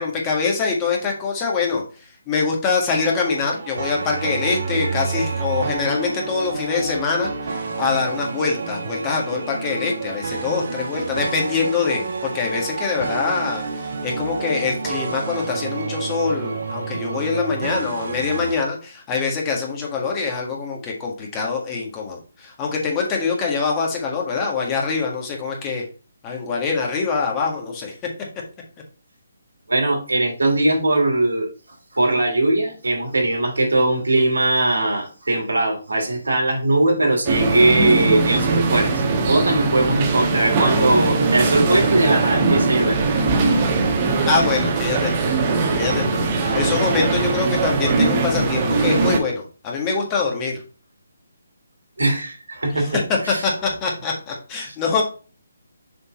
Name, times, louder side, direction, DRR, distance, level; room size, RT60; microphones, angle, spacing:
voice 1, 0.0-1.8 2.3-25.8 26.2-27.9 44.3-45.3 45.7-50.6 52.7-52.9 53.4-55.0, left 4 dB, 20° left, 0 dB, 1.7 m, -24 dB
sound 1, 2.9-18.6, right 4 dB, 60° right, 1.2 m, -29 dB
voice 2, 29.7-31.5 31.9-43.6 52.0-53.0 53.2-53.5 54.6-54.7, right 2 dB, 80° right, 1 dB, 2.7 m, -20 dB
sound 2, 37.2-49.2, right 3 dB, 30° right, 1.3 m, -20 dB
6.8 x 4.0 x 4.2 m, 0.36 s
figure-of-eight pair, 145°, 0 cm